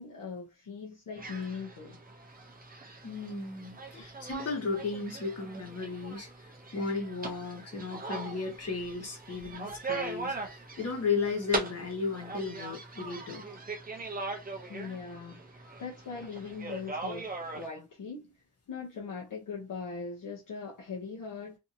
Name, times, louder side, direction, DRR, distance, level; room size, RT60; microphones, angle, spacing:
voice 1, 0.0-2.0 3.9-4.1 14.7-18.3 18.7-21.6, left 5 dB, 60° left, 0.8 m, -40 dB
sound 1, 1.2-17.7, right 3 dB, 25° right, 0.5 m, -40 dB
voice 2, 3.0-13.4, left 4 dB, 40° left, 1.2 m, -35 dB
2.7 x 2.7 x 2.6 m
wide cardioid pair, 160°, 37 cm